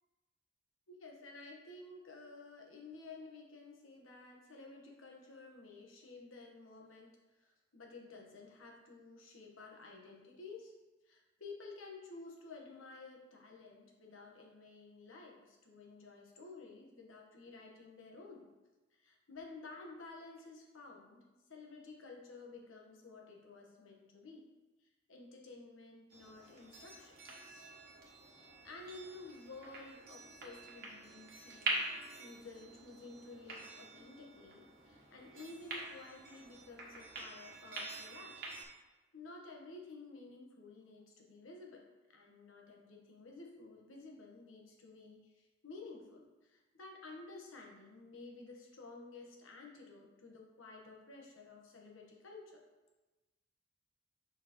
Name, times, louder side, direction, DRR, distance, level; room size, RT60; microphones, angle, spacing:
voice 1, 0.9-7.1 7.4-10.7 11.0-18.5 18.9-21.2 21.5-24.4 24.8-27.7 28.6-38.6 39.1-41.8 42.1-52.6, left 3 dB, 80° left, 0 dB, 1.3 m, -53 dB
sound 1, 26.1-38.6, right 2 dB, 50° right, 1.3 m, -45 dB
6.5 x 5.8 x 3.0 m, 1.1 s
head